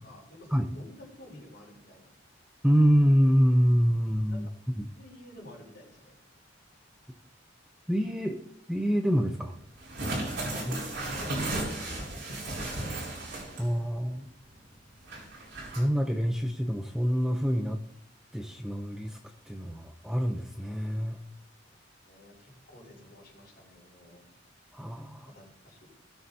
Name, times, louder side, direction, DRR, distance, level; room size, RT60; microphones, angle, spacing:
voice 1, 0.0-2.1 4.3-4.4 4.9-6.1 10.4-12.6 21.7-21.8 22.1-24.2 25.2-25.8, left 1 dB, 55° left, -3 dB, 4.6 m, -50 dB
voice 2, 2.6-4.5 4.8-4.9 7.9-8.4 8.7-9.6 10.7-10.8 11.1-11.2 13.6-14.3 15.8-17.8 18.3-19.2 19.5-21.2 24.7-25.3, equal, 5° right, 5 dB, 0.6 m, -26 dB
sound 1, 9.8-13.8 14.1-14.2 15.0-15.8, right 2 dB, 70° right, 4.6 m, -34 dB
17.5 x 6.7 x 2.7 m, 0.71 s
head